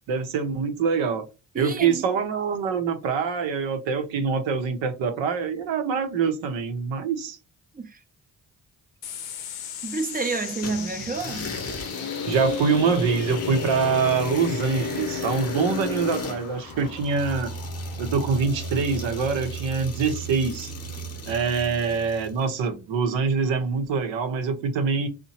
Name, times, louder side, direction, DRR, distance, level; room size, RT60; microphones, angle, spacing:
voice 1, 0.1-1.3 1.6-7.4 12.3-17.5 18.0-20.7 21.3-25.1, right 5 dB, 70° right, 0.7 m, -25 dB
voice 2, 1.5-2.1 7.7-8.0 9.8-11.5, right 4 dB, 20° right, 0.5 m, -29 dB
sound 1, 9.0-23.8, left 8 dB, 90° left, 0.6 m, -41 dB
sound 2, 10.6-22.4, left 3 dB, 30° left, 0.8 m, -33 dB
2.7 x 2.1 x 2.8 m
hypercardioid pair, 45°, 47 cm